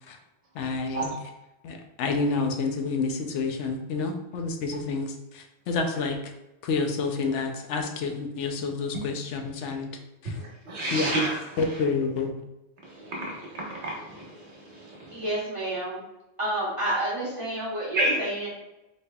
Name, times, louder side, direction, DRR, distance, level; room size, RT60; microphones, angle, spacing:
voice 1, 0.5-1.1 1.6-6.3 6.6-9.9 10.2-10.4 10.9-11.1 11.6-12.3, left 4 dB, 85° left, 4 dB, 0.9 m, -29 dB
voice 2, 10.3-11.4 12.9-15.2 17.9-18.1, right 1 dB, 75° right, -3 dB, 1.3 m, -30 dB
voice 3, 15.1-16.0 16.4-18.5, right 1 dB, 30° right, -6 dB, 1.3 m, -29 dB
4.1 x 3.2 x 2.2 m, 0.93 s
omnidirectional pair, 1.2 m